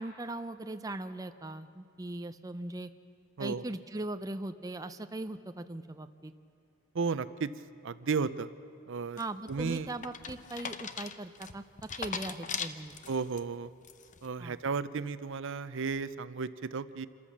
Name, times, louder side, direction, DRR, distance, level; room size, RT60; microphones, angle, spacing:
voice 1, 0.0-2.9 3.4-6.3 9.2-11.6 12.0-13.0 14.4-14.6, right 2 dB, 15° right, 9 dB, 0.5 m, -39 dB
voice 2, 6.9-7.5 7.8-8.5 8.9-9.2 9.5-9.9 13.1-13.7 14.2-17.1, right 5 dB, 60° right, 14 dB, 0.6 m, -33 dB
sound 1, 9.2-13.4 13.8-14.3, left 6 dB, 35° left, 0.7 m, -40 dB
27.5 x 13.5 x 7.3 m, 2.5 s
head